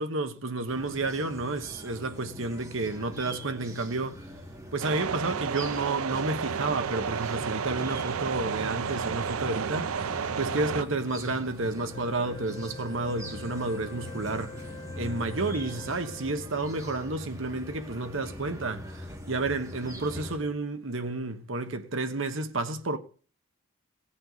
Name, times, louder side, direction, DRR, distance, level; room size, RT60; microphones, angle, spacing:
voice 1, 0.0-4.3 4.7-14.7 15.0-23.0, right 2 dB, 65° right, 1.2 m, -31 dB
sound 1, 0.7-20.4, equal, 15° right, 2.4 m, -42 dB
sound 2, 4.8-10.8, right 6 dB, 85° right, 0.5 m, -32 dB
Wind instrument woodwind instrument, 11.9-16.7, left 3 dB, 20° left, 0.7 m, -46 dB
18.0 x 7.8 x 4.0 m
head